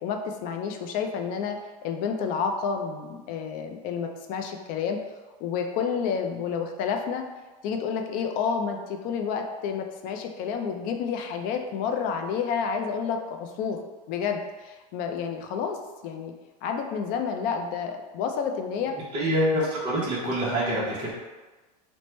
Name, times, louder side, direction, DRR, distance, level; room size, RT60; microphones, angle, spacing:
voice 1, 0.0-5.0 5.4-7.2 7.6-13.8 14.1-15.8 16.0-16.3 16.6-19.0, left 6 dB, 45° left, 4 dB, 0.4 m, -30 dB
voice 2, 19.1-21.1, equal, 25° right, -8 dB, 0.7 m, -25 dB
2.9 x 2.1 x 3.0 m, 1.2 s
supercardioid pair, 120°, 20 cm